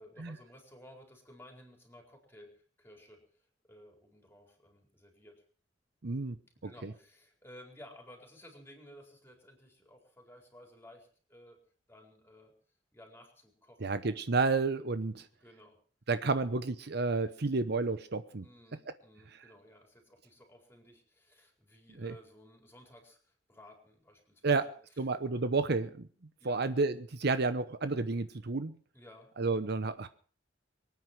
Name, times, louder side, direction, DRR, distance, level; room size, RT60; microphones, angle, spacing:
voice 1, 0.0-5.4 6.6-11.6 11.9-12.5 12.9-14.2 15.4-15.8 16.2-16.4 18.4-24.7 25.3-25.4 26.4-26.6 28.9-29.3, left 1 dB, 10° left, 2 dB, 4.4 m, -56 dB
voice 2, 6.0-6.4 6.6-6.9 13.8-15.3 16.1-18.4 22.0-22.1 24.4-24.7 25.0-26.1 26.4-28.8 29.4-30.1, right 3 dB, 60° right, 12 dB, 0.9 m, -31 dB
23.0 x 9.5 x 6.0 m, 0.43 s
head